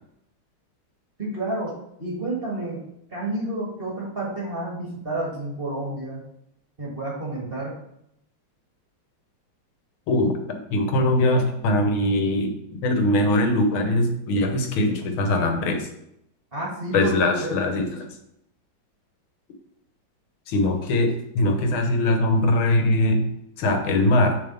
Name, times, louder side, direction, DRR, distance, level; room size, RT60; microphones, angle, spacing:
voice 1, 1.2-2.8 3.1-6.2 6.8-7.8 16.5-17.1 17.4-17.8, right 2 dB, 30° right, -5 dB, 1.6 m, -30 dB
voice 2, 10.1-15.9 16.9-18.1 20.5-23.3 23.6-24.4, left 1 dB, 90° left, 5 dB, 1.9 m, -22 dB
6.8 x 3.9 x 5.2 m, 0.76 s
omnidirectional pair, 2.2 m